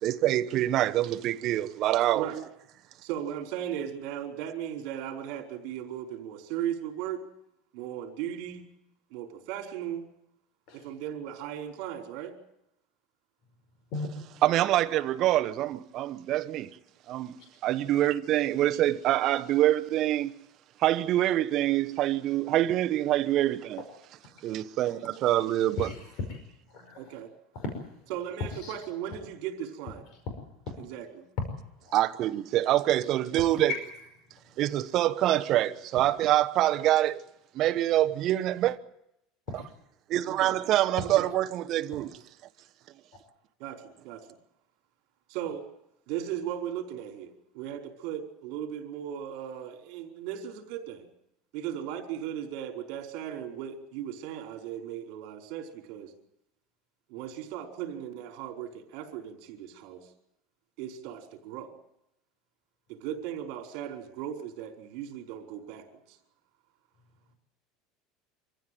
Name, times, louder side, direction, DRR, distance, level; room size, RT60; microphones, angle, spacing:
voice 1, 0.0-2.3 14.4-16.7 17.1-17.4 17.6-20.3 20.8-23.8 24.4-25.9 31.9-33.7 34.6-37.2 37.5-38.8 39.5-39.6 40.1-42.1, right 13 dB, 40° right, 1.1 m, -25 dB
voice 2, 3.0-7.2 7.7-8.6 9.1-10.1 10.7-12.3 27.0-27.3 28.1-30.0 30.8-31.3 40.3-40.6 41.1-41.3 43.6-44.3 45.3-45.6 46.1-51.0 51.5-56.1 57.1-60.1 60.8-61.7 62.9-66.2, right 10 dB, 55° right, 4.7 m, -37 dB
voice 3, 25.8-26.4 26.7-27.2 27.5-27.8 28.6-28.7 30.3-30.4 31.8-32.0 33.4-33.8 39.5-39.6, left 4 dB, 50° left, 5.4 m, -36 dB
25.0 x 15.5 x 9.3 m
cardioid pair, 160°, 0 cm